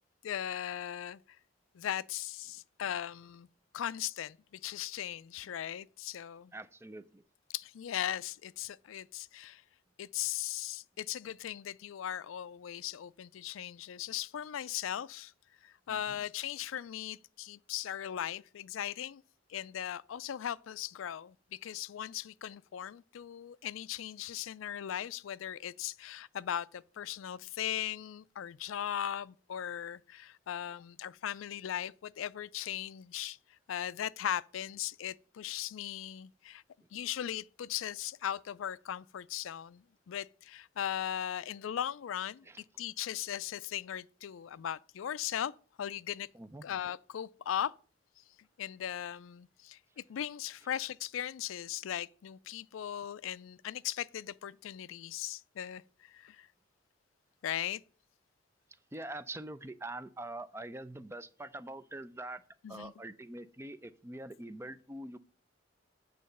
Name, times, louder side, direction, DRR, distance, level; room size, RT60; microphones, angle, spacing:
voice 1, 0.2-1.4 1.7-3.5 3.7-6.5 7.5-9.6 10.0-15.3 15.6-19.2 19.5-36.6 36.9-42.5 42.8-45.5 45.8-46.3 46.6-47.7 48.2-48.3 48.6-56.5 57.4-57.8 62.6-62.9, left 10 dB, 85° left, 0.4 m, -38 dB
voice 2, 6.5-7.2 15.9-16.2 42.5-42.6 46.3-46.6 58.9-62.4 62.7-65.2, right 1 dB, 15° right, 0.4 m, -44 dB
8.5 x 3.9 x 5.4 m
head